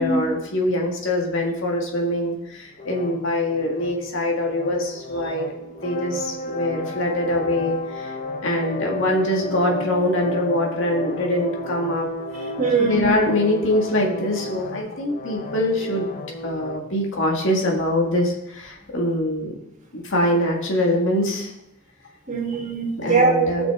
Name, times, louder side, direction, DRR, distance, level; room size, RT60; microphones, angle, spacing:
voice 1, 0.0-8.1 8.4-12.1 12.8-16.1 16.4-19.6 19.9-21.5 23.0-23.7, left 1 dB, 65° left, 0 dB, 1.9 m, -23 dB
sound 1, 2.8-16.8, left 1 dB, 40° left, 0.9 m, -33 dB
voice 2, 12.3-13.1 22.3-23.7, right 4 dB, 40° right, 0 dB, 2.0 m, -22 dB
17.5 x 6.2 x 3.7 m, 0.85 s
head